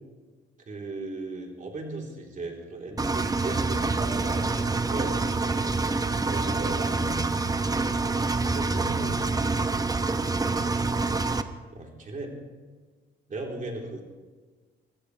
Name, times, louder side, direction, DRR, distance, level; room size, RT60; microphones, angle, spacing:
voice 1, 0.7-6.0 6.3-7.3 8.1-9.2 11.7-12.4 13.3-14.0, right 2 dB, 40° right, 0 dB, 3.6 m, -37 dB
Engine, 3.0-11.4, right 3 dB, 20° right, 0.8 m, -26 dB
22.0 x 15.0 x 3.3 m, 1.4 s
cardioid pair, 90°, 20 cm